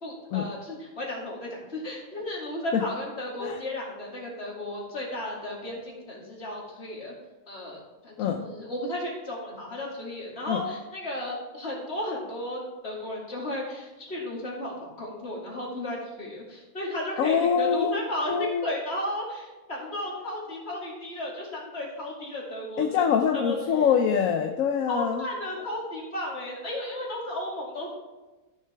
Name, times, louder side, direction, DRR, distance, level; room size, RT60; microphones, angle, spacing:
voice 1, 0.0-7.1 7.5-23.1 23.3-23.6 24.9-27.9, left 1 dB, 45° left, -4 dB, 2.7 m, -34 dB
voice 2, 17.2-17.9 18.3-18.7 22.8-25.2, left 7 dB, 70° left, 5 dB, 1.1 m, -24 dB
13.5 x 6.8 x 3.4 m, 1.2 s
omnidirectional pair, 1.6 m